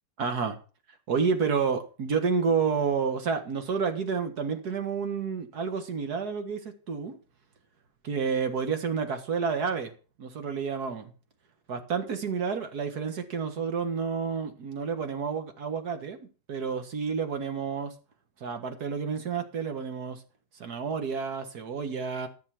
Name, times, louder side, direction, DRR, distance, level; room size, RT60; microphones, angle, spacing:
voice 1, 0.2-0.6 1.1-7.2 8.0-9.9 10.2-11.1 11.7-16.2 16.5-17.9 18.4-20.2 20.5-22.3, right 5 dB, 65° right, 2.1 m, -30 dB
14.0 x 6.8 x 6.0 m
omnidirectional pair, 1.9 m